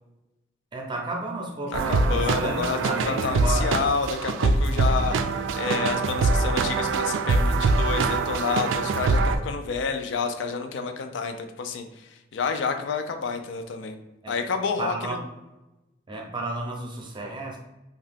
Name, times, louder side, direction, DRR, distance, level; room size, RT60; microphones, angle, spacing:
voice 1, 0.7-3.7 14.2-14.4 14.8-15.2 16.1-17.6, right 2 dB, 25° right, 0 dB, 0.5 m, -32 dB
voice 2, 1.7-2.8 3.1-5.2 5.6-11.8 12.3-14.0 14.3-15.2, left 5 dB, 70° left, 6 dB, 0.3 m, -29 dB
sound 1, 1.7-9.4, right 3 dB, 80° right, 0.3 m, -24 dB
2.7 x 2.3 x 3.4 m, 1.0 s
head